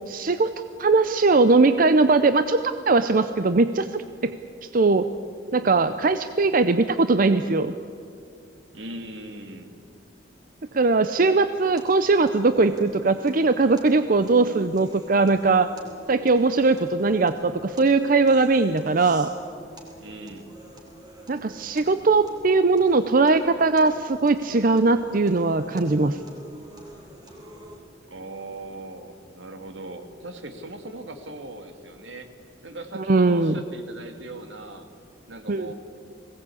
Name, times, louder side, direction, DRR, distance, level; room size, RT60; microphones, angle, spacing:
voice 1, 0.1-0.5 0.8-2.6 2.9-4.3 4.7-5.1 5.5-7.7 10.7-15.7 16.1-19.3 21.3-26.2 32.9-33.6 35.5-35.7, right 3 dB, 45° right, 10 dB, 0.6 m, -20 dB
voice 2, 8.7-9.8 20.0-20.5 28.1-32.3 32.6-34.9 35.3-35.7, right 2 dB, 80° right, 6 dB, 2.0 m, -39 dB
sound 1, 11.8-27.8, right 1 dB, 20° right, 3.4 m, -47 dB
20.5 x 17.5 x 8.4 m, 2.3 s
head